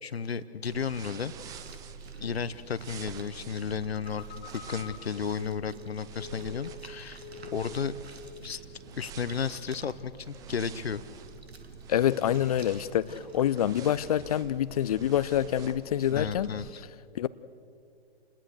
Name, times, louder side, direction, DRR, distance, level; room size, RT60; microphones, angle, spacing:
voice 1, 0.0-1.3 2.2-7.2 7.5-8.0 8.4-8.6 9.0-11.0 16.1-16.8, left 6 dB, 70° left, 15 dB, 1.0 m, -33 dB
sound 1, 0.6-16.7, right 8 dB, 10° right, 0.6 m, -47 dB
sound 2, 1.2-14.2, right 3 dB, 70° right, 2.6 m, -51 dB
Telephone, 3.9-7.0 7.2-7.9 8.2-8.5, left 7 dB, 15° left, 2.2 m, -46 dB
voice 2, 11.9-16.5 17.1-17.3, left 11 dB, 35° left, 18 dB, 0.6 m, -26 dB
29.0 x 21.0 x 6.5 m, 2.5 s
figure-of-eight pair, 130°, 32 cm